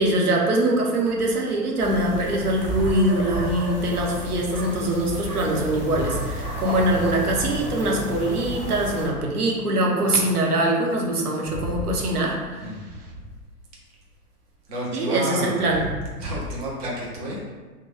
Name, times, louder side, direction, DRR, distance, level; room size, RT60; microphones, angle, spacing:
voice 1, 0.0-12.7 14.9-15.8, right 1 dB, 70° right, 0 dB, 0.8 m, -23 dB
sound 1, 1.8-9.1, equal, 10° right, 1.2 m, -32 dB
voice 2, 11.5-12.0 12.6-12.8 14.7-15.9 16.2-17.4, equal, 25° right, -3 dB, 0.4 m, -30 dB
3.0 x 2.2 x 4.2 m, 1.3 s
figure-of-eight pair, 105°, 47 cm